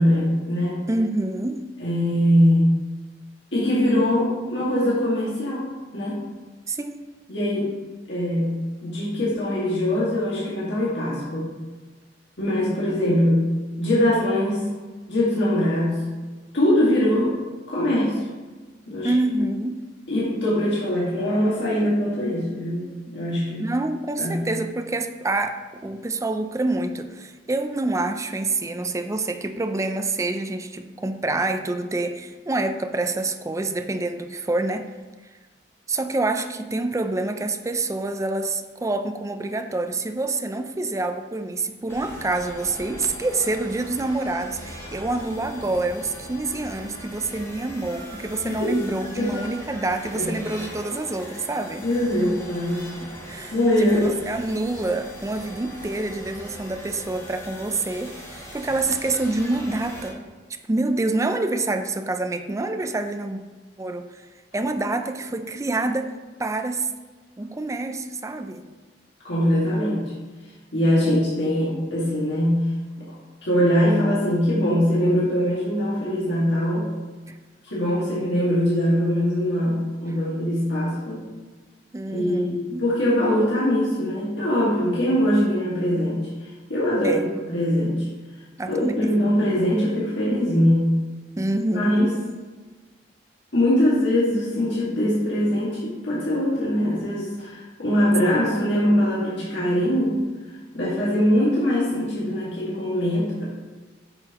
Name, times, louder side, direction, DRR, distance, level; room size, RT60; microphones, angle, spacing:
voice 1, 0.0-0.8 1.8-2.6 3.5-6.2 7.3-7.7 8.1-8.5 8.8-11.5 12.4-13.4 13.8-14.6 15.1-16.0 16.5-17.3 17.7-18.2 18.9-19.1 20.1-23.6 24.2-24.4 48.4-48.7 49.2-49.3 50.1-50.3 51.8-52.9 53.5-54.1 69.2-70.1 70.7-72.6 73.4-76.8 77.6-81.3 82.1-86.2 86.7-87.2 87.5-88.1 88.7-90.9 91.7-92.1 93.5-100.2 100.7-103.4, equal, 70° left, -7 dB, 2.0 m, -22 dB
voice 2, 0.9-1.6 6.7-7.0 13.1-13.2 19.0-19.8 23.6-34.9 35.9-52.0 53.0-53.5 53.8-60.2 60.7-63.4 63.8-64.2 64.5-66.9 67.4-68.7 71.0-71.2 77.3-77.4 81.9-82.8 85.3-86.0 87.0-87.2 88.6-89.2 89.6-89.7 91.4-92.2 98.2-98.4, right 2 dB, 15° right, 7 dB, 0.4 m, -27 dB
sound 1, 41.9-60.1, equal, 15° left, 2.0 m, -40 dB
8.9 x 5.8 x 3.0 m, 1.3 s
head